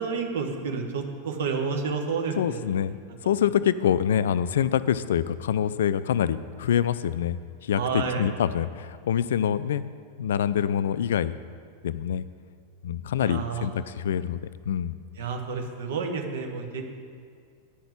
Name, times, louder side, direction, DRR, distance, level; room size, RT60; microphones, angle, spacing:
voice 1, 0.0-2.6 7.7-8.3 13.2-13.7 15.2-16.9, right 5 dB, 60° right, 4 dB, 1.3 m, -30 dB
voice 2, 2.4-3.0 3.3-9.8 10.2-11.3 11.8-12.3 12.8-15.0, left 9 dB, 60° left, 15 dB, 0.3 m, -25 dB
10.0 x 5.9 x 8.4 m, 2.2 s
figure-of-eight pair, 90°, 0 cm